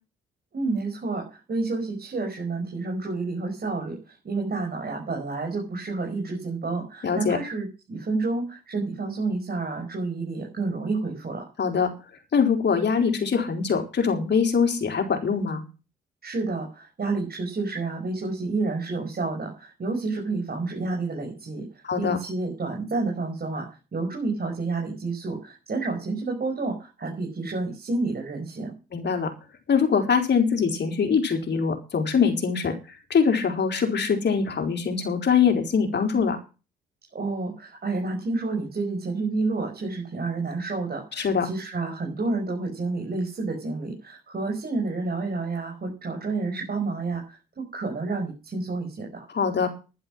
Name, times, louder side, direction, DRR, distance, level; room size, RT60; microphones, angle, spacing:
voice 1, 0.5-11.5 16.2-21.7 22.0-23.7 23.9-28.7 37.1-49.3, right 3 dB, 50° right, 1 dB, 5.8 m, -29 dB
voice 2, 7.0-7.4 11.6-11.9 12.3-15.6 21.8-22.2 28.9-29.3 29.7-36.4 41.2-41.5 49.3-49.7, left 6 dB, 55° left, 5 dB, 4.1 m, -23 dB
11.0 x 11.0 x 6.2 m, 0.32 s
supercardioid pair, 55°, 21 cm